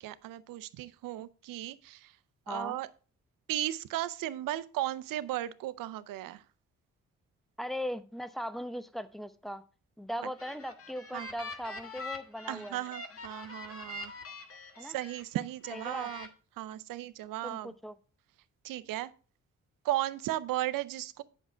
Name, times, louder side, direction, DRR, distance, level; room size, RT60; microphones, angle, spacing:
voice 1, 0.0-2.2 2.5-2.9 3.5-6.4 11.1-11.3 12.5-14.1 14.8-16.3 16.6-17.7 18.6-19.1 19.8-21.2, right 14 dB, 85° right, 0.6 m, -35 dB
voice 2, 2.5-2.8 7.6-9.6 10.0-12.8 14.8-15.0 15.7-16.1 17.4-17.9, equal, ahead, 0.8 m, -39 dB
sound 1, 10.2-15.2 15.6-16.3, left 2 dB, 45° left, 1.7 m, -44 dB
8.0 x 6.3 x 4.3 m
supercardioid pair, 55°, 33 cm